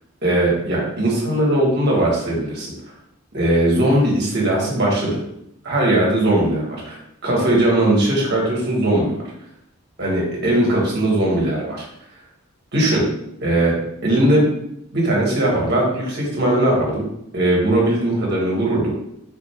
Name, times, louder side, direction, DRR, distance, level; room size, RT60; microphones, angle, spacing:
voice 1, 0.2-2.7 3.3-5.2 5.6-7.0 7.2-9.1 10.0-11.8 12.7-13.0 13.4-14.5 14.9-17.0 17.3-18.9, right 1 dB, 50° right, -3 dB, 1.4 m, -19 dB
4.2 x 2.5 x 4.3 m, 0.78 s
head